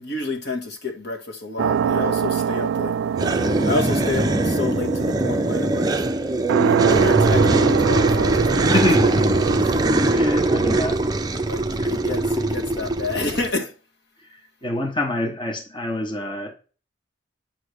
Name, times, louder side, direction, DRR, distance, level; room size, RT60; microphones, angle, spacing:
voice 1, 0.0-3.0 3.6-5.9 6.6-8.7 9.6-9.7 11.4-13.7, left 3 dB, 65° left, 1.6 m, -29 dB
sound 1, 1.6-10.2, right 8 dB, 85° right, 0.3 m, -24 dB
sound 2, 3.2-13.5, right 2 dB, 20° right, 0.5 m, -21 dB
voice 2, 8.6-11.3 11.8-12.0 14.6-16.6, left 2 dB, 25° left, 1.1 m, -27 dB
9.0 x 3.2 x 6.6 m
head